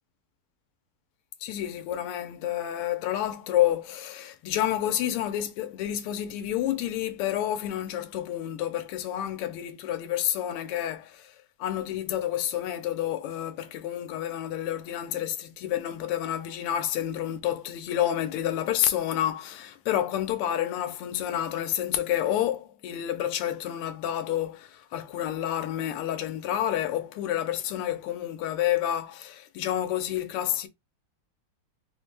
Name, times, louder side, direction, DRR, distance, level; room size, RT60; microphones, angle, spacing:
voice 1, 1.4-30.7, left 11 dB, 85° left, 1.6 m, -29 dB
4.5 x 2.0 x 3.3 m
omnidirectional pair, 2.4 m